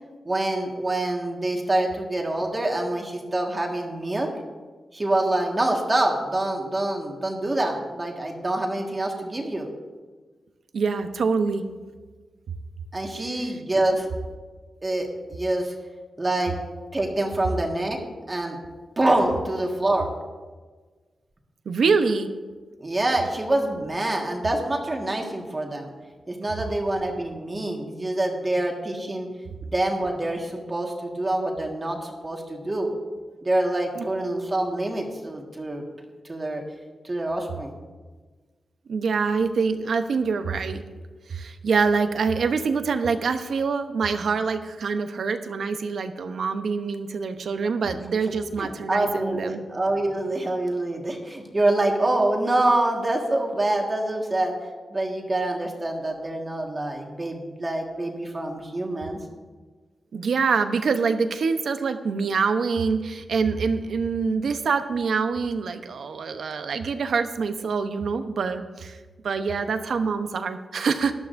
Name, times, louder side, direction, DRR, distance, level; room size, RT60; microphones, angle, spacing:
voice 1, 0.2-4.3 4.9-9.7 12.9-14.1 14.8-15.7 16.2-16.5 16.9-18.0 18.3-18.6 19.0-20.1 22.8-25.9 26.3-29.3 29.6-32.9 33.4-35.8 36.2-36.6 37.0-37.7 48.6-54.5 54.9-59.2, right 1 dB, 25° right, 1 dB, 1.7 m, -26 dB
voice 2, 10.7-11.6 13.2-13.6 21.7-22.3 34.0-34.1 38.9-40.8 41.3-49.6 60.1-69.0 69.2-71.1, right 5 dB, 75° right, 8 dB, 0.8 m, -25 dB
19.0 x 12.0 x 2.6 m, 1.4 s
wide cardioid pair, 125°, 0 cm